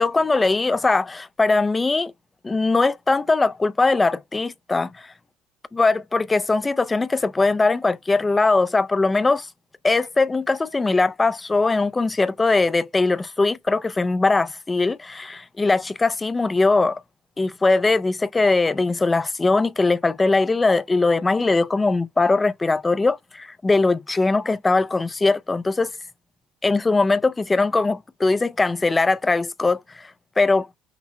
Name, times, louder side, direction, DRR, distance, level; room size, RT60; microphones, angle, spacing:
voice 1, 0.0-2.1 2.4-5.1 5.7-9.5 9.8-17.0 17.4-25.9 26.6-30.1 30.4-30.7, left 3 dB, 20° left, 0.4 m, -20 dB
5.9 x 2.0 x 4.1 m
hypercardioid pair, 70°, 0 cm